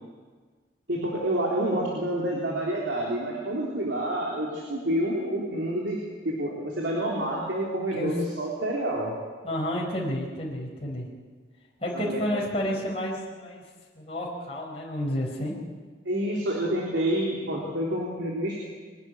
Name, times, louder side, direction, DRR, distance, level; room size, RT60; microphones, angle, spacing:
voice 1, 0.9-6.0 6.2-9.1 11.9-12.2 16.1-18.6, right 1 dB, 75° right, -3 dB, 3.7 m, -28 dB
voice 2, 9.4-11.1 11.8-13.6 13.9-15.5, equal, 30° left, -3 dB, 4.6 m, -30 dB
23.0 x 12.0 x 9.8 m, 1.5 s
head